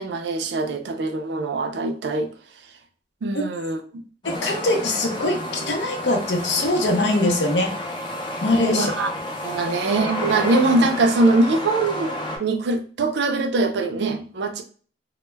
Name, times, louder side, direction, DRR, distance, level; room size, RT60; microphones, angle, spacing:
voice 1, 0.0-2.3 3.2-4.0 8.7-9.1 9.4-14.6, right 2 dB, 70° right, 0.4 m, -22 dB
voice 2, 4.2-7.7 8.4-8.9, left 2 dB, 75° left, 0.6 m, -22 dB
sound 1, 4.2-12.4, left 1 dB, 25° left, 0.5 m, -31 dB
2.2 x 2.0 x 3.1 m
head